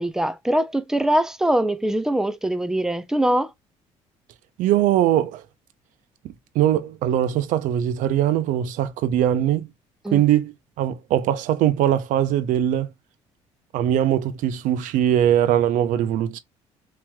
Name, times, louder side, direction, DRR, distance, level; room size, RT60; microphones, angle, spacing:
voice 1, 0.0-3.5 10.0-10.2, right 1 dB, 5° right, 0.5 m, -22 dB
voice 2, 4.6-5.4 6.2-9.7 10.1-12.9 13.7-16.4, right 11 dB, 75° right, 0.5 m, -21 dB
2.9 x 2.9 x 2.2 m
supercardioid pair, 80°, 13 cm